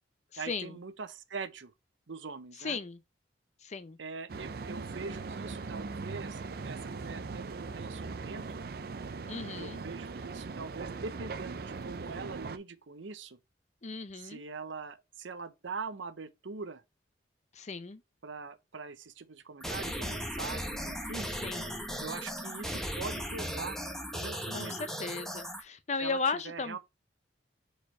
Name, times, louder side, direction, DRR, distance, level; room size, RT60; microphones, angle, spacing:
voice 1, 0.4-1.7 2.1-2.8 4.0-8.6 9.6-13.4 14.2-16.8 18.2-21.3 22.0-23.8 24.1-24.8 26.0-26.8, right 4 dB, 80° right, 0.7 m, -42 dB
voice 2, 2.6-3.0 3.6-4.0 9.3-9.8 13.8-14.4 17.6-18.0 21.4-21.7 24.5-26.8, left 4 dB, 35° left, 0.5 m, -35 dB
sound 1, 4.3-12.6, right 4 dB, 50° right, 0.4 m, -40 dB
sound 2, 19.6-25.6, equal, ahead, 0.9 m, -37 dB
4.8 x 4.4 x 4.6 m
head